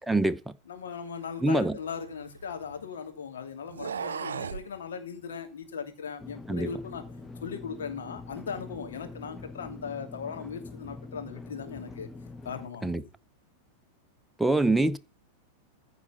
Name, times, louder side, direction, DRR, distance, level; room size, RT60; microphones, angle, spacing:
voice 1, 0.1-0.5 1.4-1.8 6.5-6.7 12.8-13.0 14.4-15.0, right 2 dB, 5° right, 0.7 m, -24 dB
voice 2, 0.7-7.0 7.4-12.1 12.4-13.1, left 6 dB, 65° left, 2.8 m, -38 dB
sound 1, 1.4-2.9 3.6-4.7, right 7 dB, 70° right, 0.6 m, -37 dB
sound 2, 6.2-12.7, left 3 dB, 15° left, 1.2 m, -44 dB
15.0 x 4.9 x 8.4 m
figure-of-eight pair, 90°, 0 cm